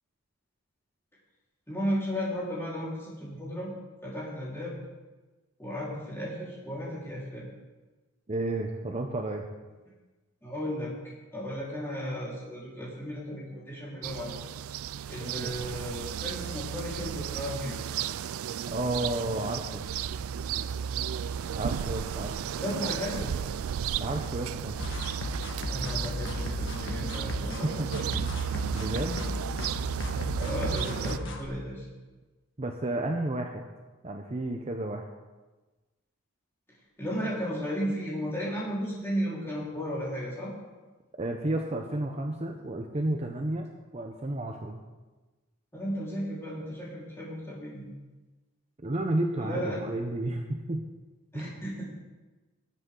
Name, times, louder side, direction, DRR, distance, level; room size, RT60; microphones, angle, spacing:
voice 1, 1.7-3.7 4.0-4.8 5.6-7.5 10.4-10.9 11.3-14.3 15.1-17.7 20.5-20.7 22.6-23.3 25.7-28.2 28.4-28.5 30.4-31.9 37.0-40.5 45.7-47.8 49.4-49.9 51.3-51.8, equal, 10° left, -8 dB, 4.1 m, -34 dB
voice 2, 8.3-9.5 15.2-15.5 18.7-19.8 21.5-22.3 24.0-24.8 27.0-27.1 27.6-27.9 28.7-29.2 32.6-33.6 34.0-35.1 41.2-43.7 43.9-44.8 48.8-50.8 51.3-51.5, right 1 dB, 30° right, 3 dB, 0.7 m, -32 dB
sound 1, 14.0-31.2, right 8 dB, 75° right, 0.4 m, -34 dB
sound 2, 24.8-31.5, left 1 dB, 60° left, 1.4 m, -35 dB
19.5 x 8.0 x 3.8 m, 1.2 s
head